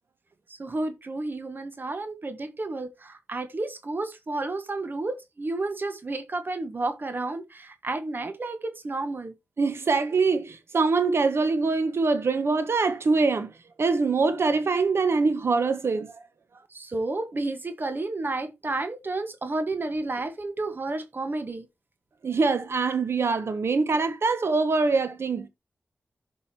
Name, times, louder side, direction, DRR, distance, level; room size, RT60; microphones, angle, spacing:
voice 1, 0.6-9.3 16.7-21.6, right 2 dB, 45° right, 1.5 m, -31 dB
voice 2, 9.6-13.5 13.8-16.2 22.2-25.5, right 4 dB, 65° right, 1.4 m, -24 dB
14.5 x 5.5 x 2.9 m
cardioid pair, 65°, 5 cm